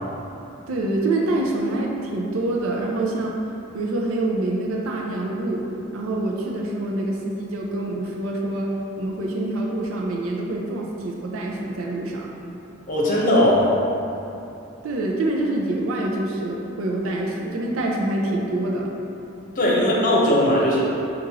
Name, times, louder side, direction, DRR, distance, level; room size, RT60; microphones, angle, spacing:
voice 1, 0.7-3.4 3.7-5.7 5.9-12.3 14.8-19.0, right 2 dB, 90° right, -1 dB, 0.5 m, -26 dB
voice 2, 12.9-13.7 19.6-20.8, left 1 dB, 45° left, -5 dB, 0.8 m, -18 dB
6.0 x 2.5 x 2.8 m, 2.9 s
head